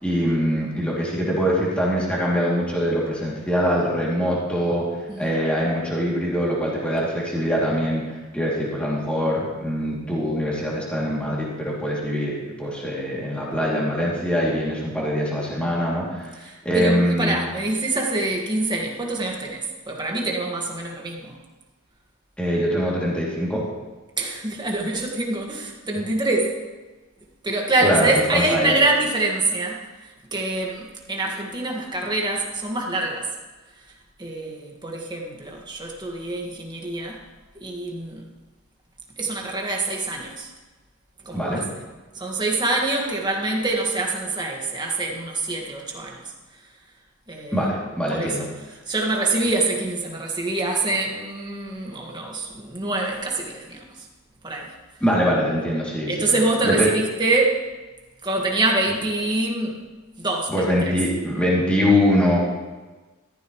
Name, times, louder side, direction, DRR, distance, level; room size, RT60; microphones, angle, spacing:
voice 1, 0.0-4.8 5.2-8.0 8.3-16.4 16.6-17.4 22.4-23.6 27.8-28.8 41.3-41.6 47.5-48.4 55.0-56.3 56.7-56.9 60.5-62.4, equal, 5° left, -6 dB, 2.8 m, -23 dB
voice 2, 5.1-5.4 16.4-21.4 24.2-26.6 27.4-29.8 30.3-33.3 34.2-37.2 37.6-38.3 39.2-40.5 41.3-41.6 42.2-46.2 47.3-47.7 48.1-53.8 54.4-54.7 56.1-57.6 58.2-59.8 60.2-61.0, right 2 dB, 20° right, 0 dB, 1.8 m, -25 dB
15.0 x 13.5 x 3.2 m, 1.2 s
head